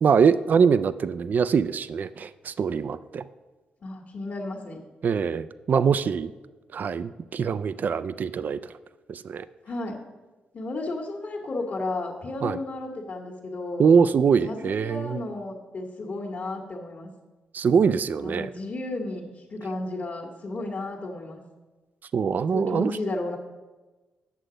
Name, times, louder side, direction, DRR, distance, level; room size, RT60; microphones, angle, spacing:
voice 1, 0.0-3.2 5.0-6.3 6.7-8.7 9.1-9.5 12.4-12.6 13.8-15.2 17.5-18.5 22.1-22.9, right 6 dB, 55° right, 14 dB, 0.3 m, -23 dB
voice 2, 3.8-4.8 9.6-10.0 10.5-13.9 14.4-17.1 18.2-21.4 22.5-23.4, left 2 dB, 50° left, -3 dB, 1.5 m, -33 dB
8.2 x 6.5 x 5.0 m, 1.2 s
supercardioid pair, 60°, 3 cm